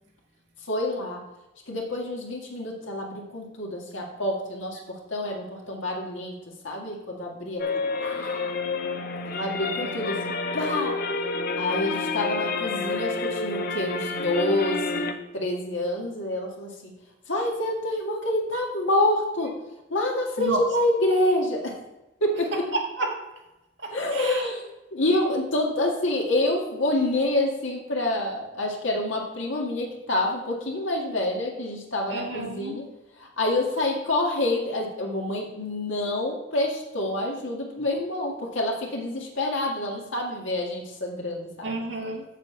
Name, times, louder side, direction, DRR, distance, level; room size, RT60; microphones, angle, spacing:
voice 1, 0.7-1.2 1.7-6.3 6.6-8.5 9.3-10.2 10.5-11.0 11.6-16.9 17.3-19.5 19.9-21.7 22.2-22.5 23.9-24.6 24.9-32.9 33.2-41.8, left 1 dB, 75° left, -1 dB, 1.9 m, -27 dB
sound 1, 7.6-15.1, left 3 dB, 50° left, 0.6 m, -29 dB
voice 2, 9.6-10.0 20.4-20.6 22.5-23.1 23.8-24.5 32.1-32.8 41.6-42.2, right 2 dB, 60° right, 0 dB, 1.8 m, -31 dB
7.6 x 7.4 x 4.5 m, 0.98 s
head